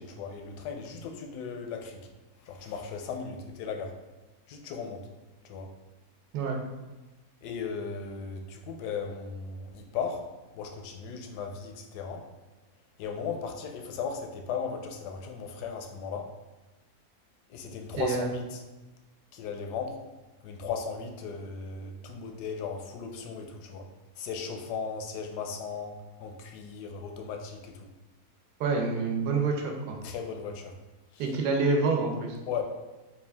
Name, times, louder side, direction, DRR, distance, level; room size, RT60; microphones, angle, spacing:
voice 1, 0.0-2.0 2.4-3.9 4.5-5.1 5.4-5.7 7.4-10.2 10.5-12.2 13.0-16.3 17.5-18.6 19.3-20.0 20.4-23.9 24.2-27.9 30.0-30.7 31.1-31.2 32.5-32.6, left 6 dB, 80° left, 4 dB, 1.1 m, -36 dB
voice 2, 18.0-18.3 28.6-30.0 31.2-32.4, right 4 dB, 80° right, 2 dB, 1.3 m, -27 dB
4.3 x 2.3 x 3.4 m, 1.1 s
omnidirectional pair, 1.8 m